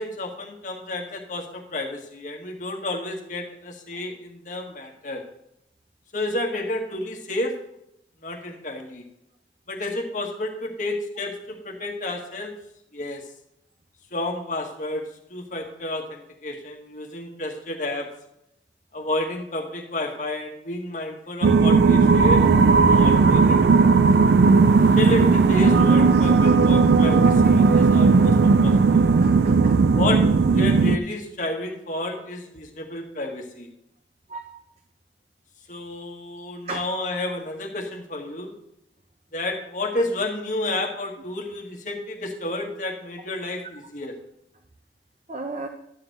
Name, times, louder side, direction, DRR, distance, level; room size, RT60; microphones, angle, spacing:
voice 1, 0.0-5.2 6.1-7.5 8.2-9.0 9.7-12.5 12.9-13.2 14.1-15.0 15.3-18.1 18.9-22.5 22.9-24.0 25.0-29.1 29.9-33.7 35.7-38.5 39.3-44.1, left 1 dB, 45° left, 1 dB, 1.6 m, -31 dB
sound 1, 21.4-31.0, right 4 dB, 70° right, 0.4 m, -16 dB
voice 2, 29.2-30.0 34.3-34.6 36.6-36.9 45.3-45.7, right 2 dB, 40° right, 4 dB, 0.7 m, -32 dB
11.5 x 3.9 x 7.8 m, 0.80 s
head